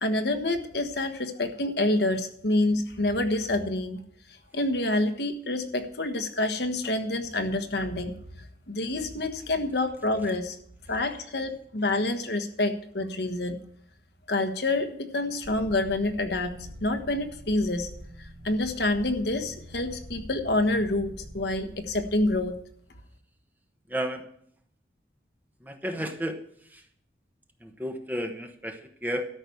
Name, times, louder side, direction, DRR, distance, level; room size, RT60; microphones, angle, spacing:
voice 1, 0.0-4.0 4.5-8.1 8.7-10.6 10.9-13.6 14.3-16.6 16.8-17.9 18.4-22.5, left 2 dB, 75° left, 7 dB, 1.3 m, -27 dB
sound 1, 15.4-22.5, equal, 50° right, 1.9 m, -45 dB
voice 2, 23.9-24.3 25.6-26.4 26.7-26.8 27.6-29.3, equal, 10° right, 6 dB, 1.0 m, -32 dB
13.0 x 6.1 x 8.4 m, 0.64 s
head